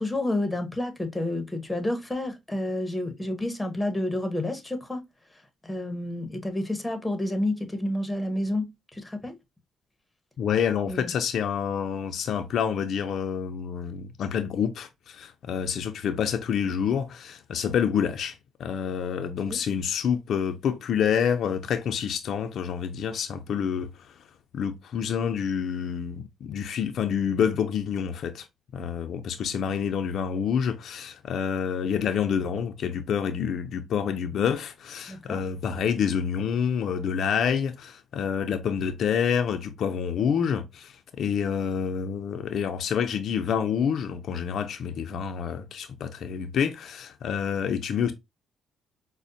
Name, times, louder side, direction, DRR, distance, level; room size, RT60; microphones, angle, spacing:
voice 1, 0.0-5.0 5.6-8.7 8.9-9.3 10.9-11.1 19.4-19.6 35.1-35.4, left 1 dB, 10° left, 0.8 m, -29 dB
voice 2, 10.4-24.1 24.5-28.5 28.7-48.1, left 7 dB, 65° left, 0.4 m, -28 dB
5.0 x 2.0 x 2.6 m
cardioid pair, 90°, 0 cm